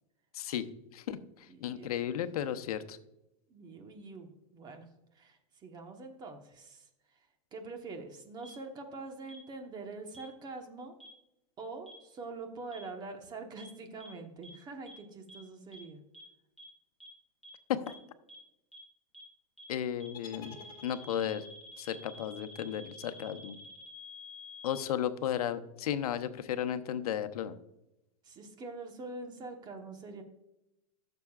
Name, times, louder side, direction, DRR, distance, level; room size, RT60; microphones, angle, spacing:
voice 1, 0.3-0.7 0.9-3.0 17.7-17.9 19.7-20.6 20.8-21.4 21.8-23.6 24.6-27.6, left 10 dB, 80° left, 10 dB, 0.8 m, -34 dB
voice 2, 1.5-1.9 3.5-4.8 5.1-10.9 11.6-16.0 28.2-30.2, right 3 dB, 20° right, 5 dB, 1.2 m, -45 dB
sound 1, 8.4-8.5 9.3-9.4 10.1-10.2 11.0-11.1 11.9-12.0 12.7-12.8 13.6-13.7 14.0-14.1 14.4-14.5 14.9-15.0 15.3-15.4 15.7-15.8 16.1-16.2 16.6-16.7 17.0-17.1 17.4-17.5 17.9-18.0 18.3-18.4 18.7-18.8 19.1-19.2 19.6-19.7 20.0-20.1 20.4-24.8, left 2 dB, ahead, 2.9 m, -50 dB
sound 2, 20.1-21.4, left 4 dB, 25° left, 1.4 m, -50 dB
14.5 x 6.9 x 2.4 m, 0.89 s
supercardioid pair, 145°, 19 cm